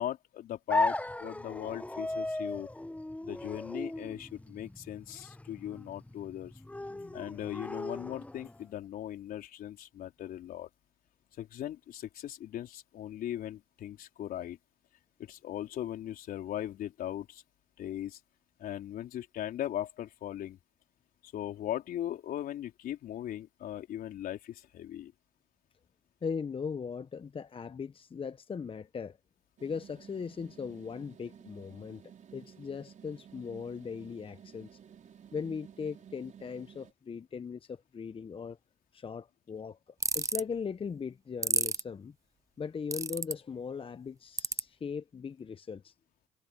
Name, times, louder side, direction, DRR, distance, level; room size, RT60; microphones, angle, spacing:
voice 1, 0.0-2.7 3.2-6.5 7.1-10.7 11.4-14.6 15.2-17.4 17.8-18.2 18.6-20.6 21.2-25.1, left 12 dB, 65° left, 4.1 m, -38 dB
sound 1, 0.7-8.7, left 1 dB, 10° left, 1.3 m, -37 dB
voice 2, 26.2-29.2 29.6-32.0 32.3-34.8 35.3-38.6 38.9-42.1 42.6-45.9, left 6 dB, 35° left, 1.1 m, -39 dB
sound 2, 29.6-36.9, right 9 dB, 50° right, 4.9 m, -53 dB
sound 3, 40.0-40.4 41.4-41.8 42.9-43.3 44.4-44.6, right 3 dB, 20° right, 1.0 m, -29 dB
hypercardioid pair, 60°, 16 cm